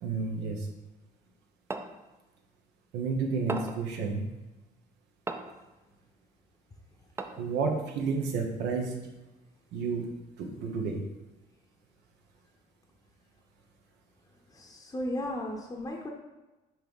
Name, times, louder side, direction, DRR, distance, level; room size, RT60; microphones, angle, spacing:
voice 1, 0.0-0.7 2.9-4.3 7.4-9.0 9.7-11.0, right 4 dB, 85° right, 2 dB, 1.2 m, -31 dB
sound 1, 1.7-2.0 3.5-3.9 5.3-5.6 7.2-7.6, right 2 dB, 15° right, 0.5 m, -36 dB
voice 2, 14.6-16.1, left 1 dB, 20° left, 0 dB, 0.8 m, -35 dB
5.9 x 3.2 x 5.3 m, 1.1 s
cardioid pair, 110°, 17 cm